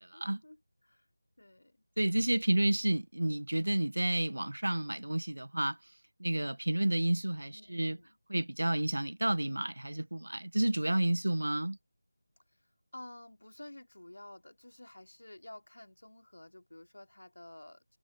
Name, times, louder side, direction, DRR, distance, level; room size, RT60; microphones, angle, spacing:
voice 1, 0.1-1.1 1.4-1.8 7.5-8.2 12.9-18.0, left 1 dB, 65° left, 3.0 m, -51 dB
voice 2, 2.0-5.8 6.2-8.0 8.3-11.8, right 1 dB, 70° right, 0.9 m, -30 dB
figure-of-eight pair, 165°, 0 cm